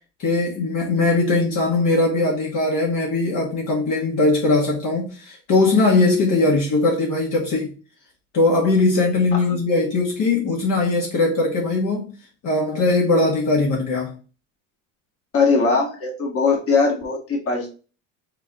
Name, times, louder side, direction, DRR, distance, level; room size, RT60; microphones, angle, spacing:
voice 1, 0.2-7.7 8.3-12.1 12.4-14.1, left 2 dB, 50° left, 1.6 m, -20 dB
voice 2, 15.3-17.7, left 4 dB, 35° left, 1.8 m, -20 dB
4.7 x 3.8 x 2.9 m
supercardioid pair, 105°, 40 cm